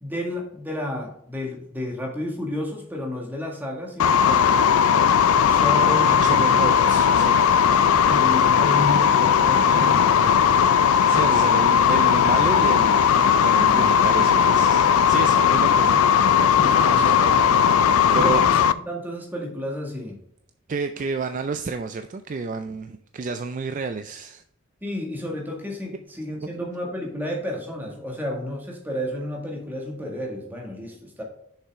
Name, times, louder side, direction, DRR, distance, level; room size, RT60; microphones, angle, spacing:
voice 1, 0.0-4.7 5.4-6.5 7.8-10.6 13.7-13.9 16.6-17.7 18.1-20.1 24.8-31.2, left 1 dB, 10° right, -1 dB, 1.8 m, -32 dB
sound 1, 4.0-18.7, left 7 dB, 75° left, 0.4 m, -18 dB
voice 2, 6.1-7.5 11.1-13.1 13.4-16.0 16.4-16.5 16.9-17.1 17.5-17.7 18.1-18.5 20.7-24.4 26.5-26.7, right 4 dB, 35° right, 9 dB, 0.3 m, -30 dB
6.7 x 5.6 x 3.6 m, 0.71 s
head